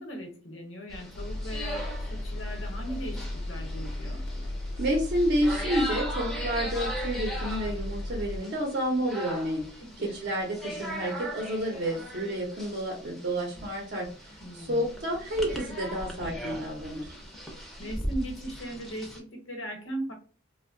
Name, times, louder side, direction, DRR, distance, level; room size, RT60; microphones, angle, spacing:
voice 1, 0.0-4.3 9.8-10.2 14.4-14.9 17.8-20.1, right 1 dB, 80° left, 2 dB, 1.0 m, -38 dB
sound 1, 0.9-19.2, equal, ahead, 0.5 m, -39 dB
Engine, 1.1-8.4, left 1 dB, 60° left, 0.5 m, -35 dB
voice 2, 4.8-9.7 10.0-14.1 14.5-17.1, equal, 50° right, 0 dB, 0.6 m, -30 dB
2.6 x 2.1 x 2.5 m, 0.39 s
head